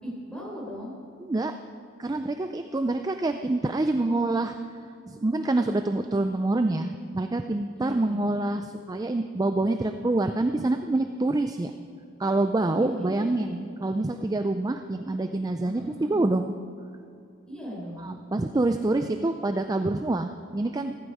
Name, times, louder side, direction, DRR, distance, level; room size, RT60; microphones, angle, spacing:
voice 1, 0.0-0.9 4.0-4.2 7.7-8.2 12.7-13.4 15.6-16.2 17.5-18.1, equal, 5° left, -5 dB, 4.2 m, -38 dB
voice 2, 1.2-1.6 2.0-4.5 5.1-11.7 12.2-16.5 18.0-21.0, right 2 dB, 20° right, 7 dB, 0.4 m, -26 dB
15.5 x 14.5 x 4.8 m, 2.6 s
head